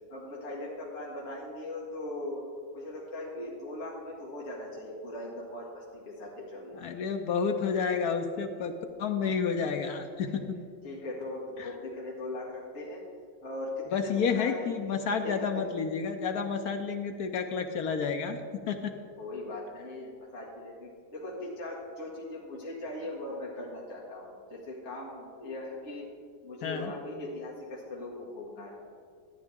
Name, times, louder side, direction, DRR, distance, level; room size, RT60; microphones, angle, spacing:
voice 1, 0.1-2.4 2.7-6.8 10.8-13.0 13.4-14.7 15.2-15.6 19.2-26.1 26.4-28.8, left 2 dB, 35° left, -5 dB, 1.9 m, -39 dB
voice 2, 6.7-10.6 11.6-11.7 13.9-18.4 18.7-18.9 26.6-26.9, left 6 dB, 70° left, 6 dB, 0.9 m, -30 dB
13.0 x 9.6 x 3.5 m, 2.1 s
omnidirectional pair, 2.1 m